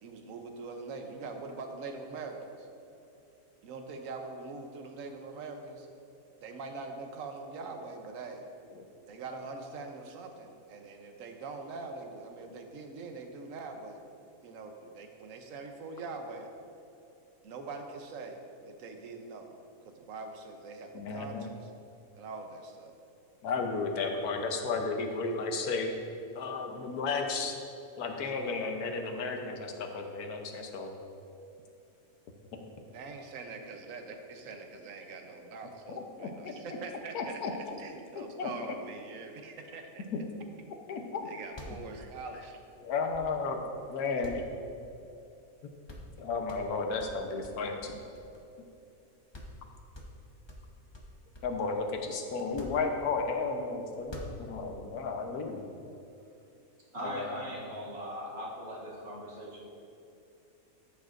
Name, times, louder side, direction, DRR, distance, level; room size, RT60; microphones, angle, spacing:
voice 1, 0.0-2.7 3.6-5.9 6.4-8.5 9.1-14.0 14.4-16.5 17.4-21.7 22.2-23.0 32.9-37.4 37.8-40.0 41.2-42.6, right 3 dB, 65° right, 4 dB, 1.2 m, -43 dB
voice 2, 20.9-21.5 23.4-25.9 26.3-27.6 28.0-30.9 36.2-36.5 37.1-37.8 38.1-38.5 40.1-40.2 40.9-41.3 42.8-43.6 43.9-44.4 46.2-48.0 51.4-55.6 57.0-57.4, left 4 dB, 85° left, 3 dB, 1.4 m, -33 dB
sound 1, 41.5-43.6 44.2-45.3 45.5-45.6 45.9-46.2 46.5-48.6 49.0-49.1 49.3-49.6 49.9-51.6 52.4-53.4 53.9-54.8, left 1 dB, 25° left, 0.7 m, -47 dB
voice 3, 56.9-59.5, equal, 45° right, -5 dB, 1.9 m, -39 dB
13.5 x 7.0 x 2.5 m, 2.7 s
omnidirectional pair, 1.6 m